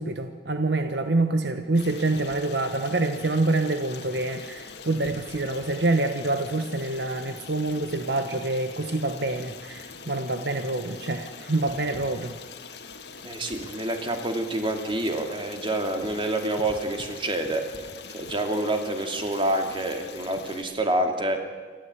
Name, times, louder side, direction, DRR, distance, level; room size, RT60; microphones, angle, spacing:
voice 1, 0.0-12.3, right 2 dB, 70° right, 7 dB, 1.2 m, -26 dB
Stream, 1.7-20.6, left 5 dB, 65° left, 1.9 m, -43 dB
voice 2, 13.2-17.6 18.1-21.4, right 1 dB, 30° right, 4 dB, 2.7 m, -27 dB
28.0 x 13.0 x 9.6 m, 1.5 s
head